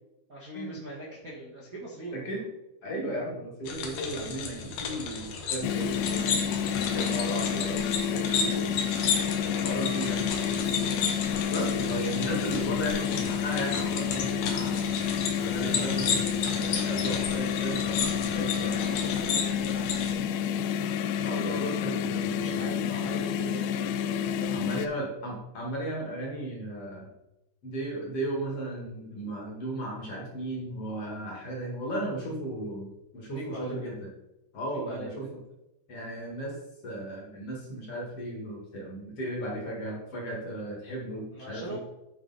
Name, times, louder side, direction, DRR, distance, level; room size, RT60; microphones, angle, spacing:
voice 1, 0.3-2.3 18.5-21.0 22.3-24.1 24.3-25.1 33.3-33.9 34.7-35.2 41.3-41.8, right 1 dB, 80° right, -7 dB, 0.8 m, -42 dB
voice 2, 2.1-2.5 2.8-8.7 9.4-10.3 10.7-11.1 11.5-15.0 15.4-16.2 16.5-18.8 21.2-23.0 24.5-27.1 27.6-34.1 34.5-35.4 35.9-36.5 36.8-41.8, right 1 dB, 45° left, -2 dB, 2.3 m, -35 dB
sound 1, 3.7-20.1, left 5 dB, 65° left, 2.3 m, -33 dB
sound 2, 5.6-24.9, left 8 dB, 85° left, 2.3 m, -29 dB
9.7 x 4.9 x 4.1 m, 0.90 s
omnidirectional pair, 4.5 m